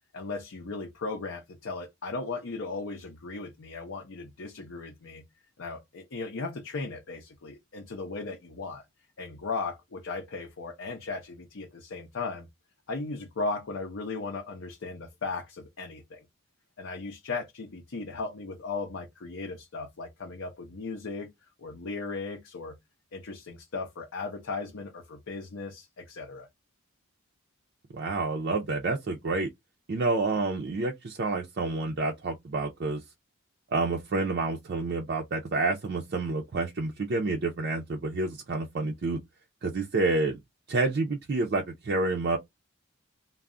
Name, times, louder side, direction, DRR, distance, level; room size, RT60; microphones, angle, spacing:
voice 1, 0.1-5.3 5.6-8.9 9.2-12.5 12.9-16.3 16.8-21.3 21.6-22.8 23.1-26.5, left 3 dB, 65° left, 0.6 m, -37 dB
voice 2, 27.9-29.5 29.9-33.0 33.7-39.2 39.6-40.4 40.7-42.4, right 3 dB, 50° right, 0.4 m, -29 dB
2.2 x 2.0 x 3.6 m
head